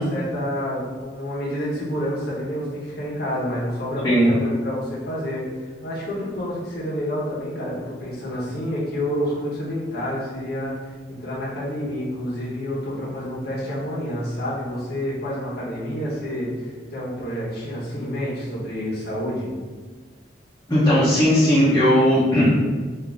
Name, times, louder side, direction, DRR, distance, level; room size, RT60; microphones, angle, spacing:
voice 1, 0.0-10.7 11.1-19.5, equal, 60° left, -7 dB, 1.1 m, -28 dB
voice 2, 20.7-22.5, equal, 20° left, -11 dB, 0.9 m, -17 dB
3.8 x 2.7 x 3.6 m, 1.4 s
head